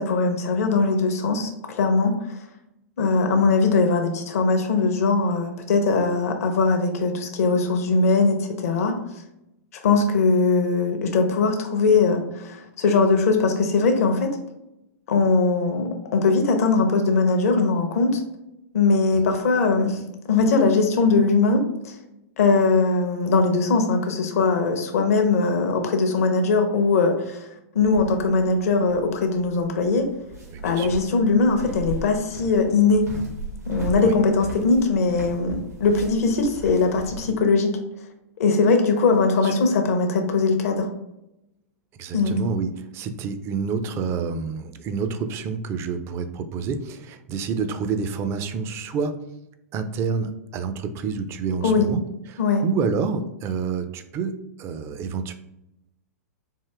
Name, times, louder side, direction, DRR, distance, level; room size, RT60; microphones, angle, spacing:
voice 1, 0.0-2.1 3.0-8.9 9.8-14.3 15.1-18.2 18.7-20.0 20.3-21.9 22.4-27.4 27.7-30.1 30.6-33.0 33.7-37.7 38.4-40.9 42.1-42.3 51.6-51.9 52.4-52.6, left 4 dB, 65° left, 4 dB, 0.6 m, -20 dB
sound 1, 27.8-37.3, right 2 dB, 80° right, 1.3 m, -37 dB
voice 2, 30.5-30.9 34.0-34.1 39.4-39.5 42.0-49.2 49.7-52.0 52.3-55.3, right 5 dB, 30° right, 9 dB, 0.4 m, -28 dB
3.6 x 2.5 x 3.3 m, 0.88 s
figure-of-eight pair, 105°, 9 cm